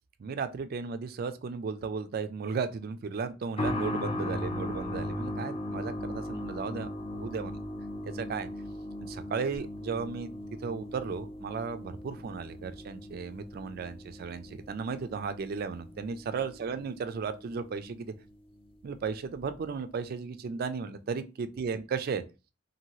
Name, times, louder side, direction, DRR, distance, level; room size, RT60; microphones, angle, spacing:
voice 1, 0.2-7.5 8.0-8.5 9.0-10.3 10.6-18.1 18.8-22.2, right 5 dB, 50° right, 11 dB, 0.3 m, -35 dB
sound 1, 3.6-18.0 18.3-18.4 19.3-19.4, left 1 dB, 30° left, 0.4 m, -38 dB
2.8 x 2.6 x 2.9 m, 0.31 s
head